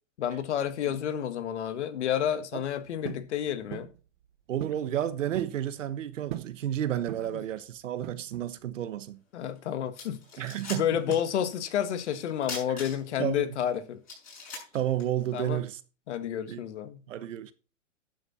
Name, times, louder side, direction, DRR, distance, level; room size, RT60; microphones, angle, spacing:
voice 1, 0.2-3.9 9.3-10.4 10.7-14.0 15.3-15.6 16.1-17.0, left 9 dB, 60° left, 1.7 m, -30 dB
sound 1, 3.0-3.3 3.7-4.0 4.6-4.9 5.1-5.6 6.3-6.6 7.1-7.4 8.0-8.5, right 14 dB, 40° right, 0.9 m, -39 dB
voice 2, 4.5-9.2 10.4-11.2 13.2-13.5 14.7-15.8 16.5-16.6 17.1-17.5, right 11 dB, 75° right, 1.2 m, -31 dB
sound 2, 9.5-9.6 9.9-11.3 11.6-11.7 12.4-13.3 13.7-13.8 14.1-15.6, left 4 dB, 20° left, 6.7 m, -41 dB
12.0 x 7.9 x 4.3 m
hypercardioid pair, 160°, 38 cm